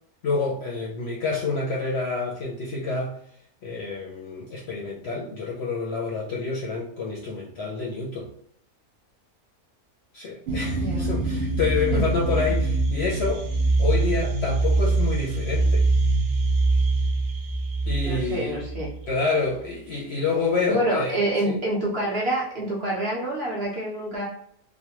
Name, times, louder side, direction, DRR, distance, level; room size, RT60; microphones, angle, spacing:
voice 1, 0.2-3.1 3.6-8.3 10.1-13.5 13.8-15.9 17.9-18.6 19.1-21.6, left 4 dB, 60° left, -3 dB, 0.7 m, -28 dB
sound 1, 10.5-19.0, right 2 dB, 65° right, 0.6 m, -23 dB
voice 2, 10.8-11.1 11.9-12.0 18.0-18.9 20.7-24.3, right 1 dB, 50° right, -4 dB, 1.0 m, -27 dB
3.2 x 2.1 x 2.9 m, 0.67 s
omnidirectional pair, 1.5 m